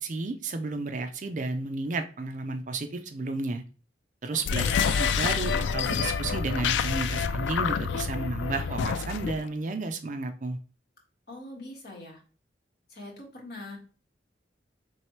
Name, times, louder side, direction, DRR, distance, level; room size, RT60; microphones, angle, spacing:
voice 1, 0.0-3.6 4.2-10.6, right 3 dB, 45° right, 7 dB, 0.4 m, -32 dB
voice 2, 4.3-4.8 11.3-12.2 12.9-13.8, left 2 dB, 60° left, -2 dB, 1.4 m, -42 dB
sound 1, 4.4-9.4, left 6 dB, 80° left, 0.3 m, -27 dB
4.6 x 3.2 x 3.1 m, 0.36 s
head